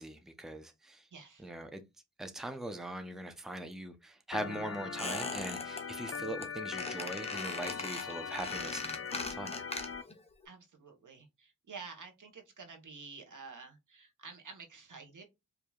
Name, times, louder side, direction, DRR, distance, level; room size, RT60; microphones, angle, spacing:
voice 1, 0.0-1.0 1.4-1.8 2.2-9.6, right 1 dB, ahead, 0.7 m, -41 dB
voice 2, 1.1-1.5 10.4-15.2, right 5 dB, 75° right, 1.2 m, -50 dB
Organ, 4.3-10.0, left 6 dB, 50° left, 0.5 m, -40 dB
Squeak, 5.0-5.8 6.1-6.5 6.8-10.2 10.4-10.5, left 2 dB, 20° left, 0.9 m, -40 dB
4.7 x 2.8 x 2.4 m
wide cardioid pair, 60°, 31 cm